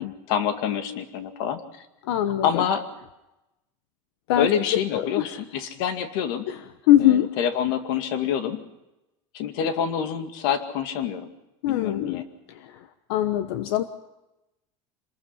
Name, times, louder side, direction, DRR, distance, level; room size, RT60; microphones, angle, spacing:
voice 1, 0.0-1.9 2.4-2.9 4.4-6.5 7.0-8.6 9.3-11.3 11.7-12.2, left 8 dB, 60° left, 8 dB, 2.2 m, -27 dB
voice 2, 2.0-2.6 4.3-5.4 6.5-6.6 6.9-7.3 11.6-12.2 12.5-13.8, left 12 dB, 85° left, 10 dB, 1.1 m, -23 dB
27.0 x 20.5 x 5.9 m, 0.96 s
cardioid pair, 175°, 13 cm